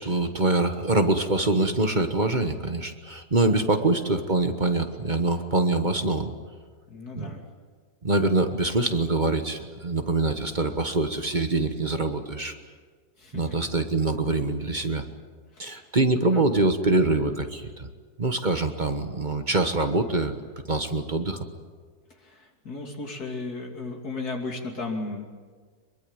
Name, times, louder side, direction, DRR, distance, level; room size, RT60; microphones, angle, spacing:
voice 1, 0.0-6.3 7.2-7.3 8.0-12.5 13.3-15.0 15.6-17.9 18.2-20.3 20.7-21.4, right 2 dB, 30° right, 7 dB, 1.4 m, -24 dB
voice 2, 6.9-7.4 13.2-13.5 15.5-15.9 16.3-16.5 22.2-25.3, left 3 dB, 80° left, 1 dB, 3.4 m, -35 dB
24.5 x 22.5 x 8.9 m, 1.5 s
omnidirectional pair, 1.6 m